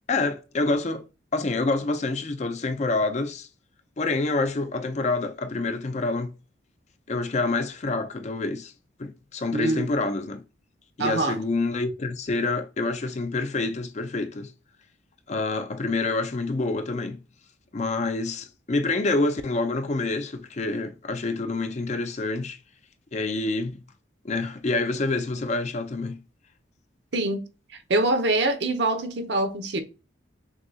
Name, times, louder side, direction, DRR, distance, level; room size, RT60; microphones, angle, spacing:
voice 1, 0.1-1.0 1.3-3.5 4.0-6.3 7.1-8.7 9.0-10.4 11.0-14.5 15.3-17.2 17.7-22.6 23.1-23.8 24.2-26.2, left 3 dB, 35° left, 0.5 m, -27 dB
voice 2, 9.5-9.9 11.0-11.4 27.1-27.4 27.9-29.8, right 2 dB, 65° right, 0.8 m, -24 dB
6.2 x 2.3 x 2.7 m
head